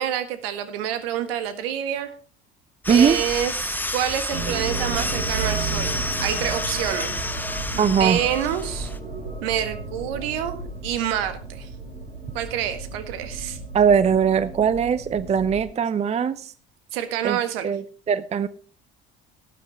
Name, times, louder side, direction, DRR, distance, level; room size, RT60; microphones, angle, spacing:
voice 1, 0.0-2.1 2.9-7.1 7.7-8.9 9.4-11.7 12.3-13.6 16.9-17.7, right 10 dB, 65° right, 10 dB, 1.7 m, -27 dB
sound 1, 2.8-9.0, left 2 dB, 5° left, 1.1 m, -30 dB
voice 2, 2.9-3.2 7.8-8.2 13.7-16.5 17.2-17.4 17.6-18.5, right 7 dB, 20° right, 16 dB, 0.6 m, -20 dB
sound 2, 4.3-15.7, right 4 dB, 80° right, 5.7 m, -33 dB
18.5 x 8.5 x 3.3 m, 0.40 s
figure-of-eight pair, 60°, 32 cm